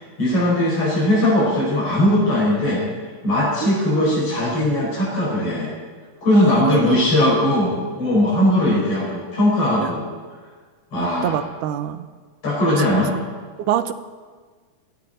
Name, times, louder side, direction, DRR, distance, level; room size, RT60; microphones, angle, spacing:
voice 1, 0.2-2.8 3.2-5.7 6.2-10.0 10.9-11.4 12.4-13.1, left 1 dB, 45° left, -7 dB, 6.5 m, -19 dB
voice 2, 3.6-4.3 6.4-7.0 9.8-10.0 11.0-12.1 13.6-13.9, right 11 dB, 80° right, 11 dB, 2.3 m, -25 dB
22.5 x 15.0 x 4.4 m, 1.5 s
omnidirectional pair, 3.7 m